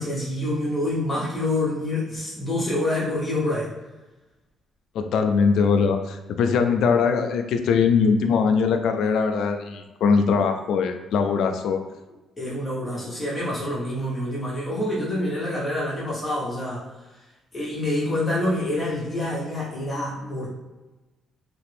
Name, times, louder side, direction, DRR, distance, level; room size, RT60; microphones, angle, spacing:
voice 1, 0.0-3.7 12.4-16.9 17.5-20.5, left 1 dB, 25° left, -6 dB, 1.1 m, -27 dB
voice 2, 4.9-11.8, left 5 dB, 75° left, 6 dB, 0.3 m, -21 dB
2.9 x 2.5 x 3.3 m, 1.1 s
cardioid pair, 90°, 0 cm